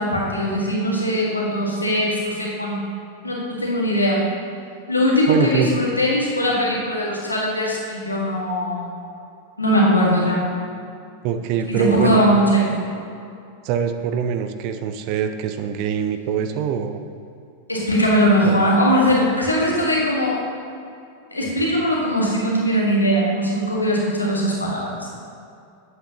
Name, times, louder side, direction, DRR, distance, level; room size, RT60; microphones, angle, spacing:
voice 1, 0.0-2.8 3.2-4.2 4.9-8.9 9.6-10.4 11.7-12.9 17.7-20.4 21.3-25.1, equal, 80° left, -4 dB, 1.7 m, -20 dB
voice 2, 5.3-5.7 11.2-12.2 13.6-17.0 18.4-18.7, right 8 dB, 45° right, 8 dB, 0.5 m, -23 dB
8.9 x 7.6 x 2.9 m, 2.5 s
figure-of-eight pair, 90°, 0 cm